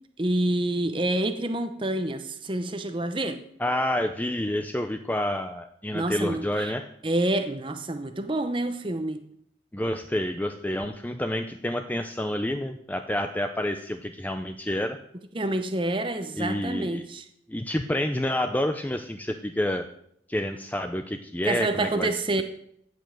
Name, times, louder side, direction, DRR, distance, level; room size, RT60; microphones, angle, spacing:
voice 1, 0.2-3.4 5.9-6.7 7.0-9.2 15.3-17.2 21.5-22.4, right 1 dB, 25° right, 8 dB, 0.7 m, -27 dB
voice 2, 3.6-6.9 9.7-15.0 16.4-17.1 17.5-19.8 20.3-22.1, left 1 dB, 10° left, 6 dB, 0.5 m, -28 dB
15.5 x 5.4 x 7.6 m, 0.70 s
head